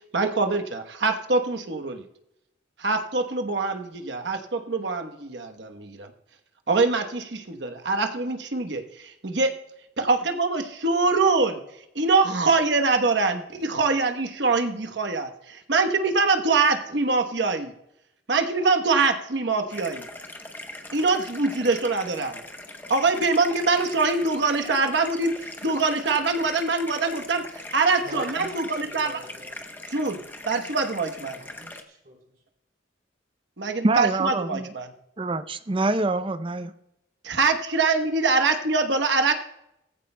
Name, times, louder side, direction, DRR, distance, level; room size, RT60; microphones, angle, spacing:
voice 1, 0.1-2.0 2.8-6.1 6.7-9.5 10.0-11.6 11.9-17.7 18.3-20.1 20.9-22.4 22.9-27.4 27.7-29.2 29.9-30.2 30.5-31.4 33.6-34.9 37.2-39.3, right 3 dB, 70° right, 1.1 m, -24 dB
sound 1, 19.7-31.8, left 2 dB, 10° left, 0.8 m, -40 dB
voice 2, 28.0-29.6 31.3-32.2, right 2 dB, 50° right, 4.0 m, -44 dB
voice 3, 33.8-34.7 35.2-36.7, right 2 dB, 30° right, 0.5 m, -25 dB
18.5 x 14.5 x 2.2 m
head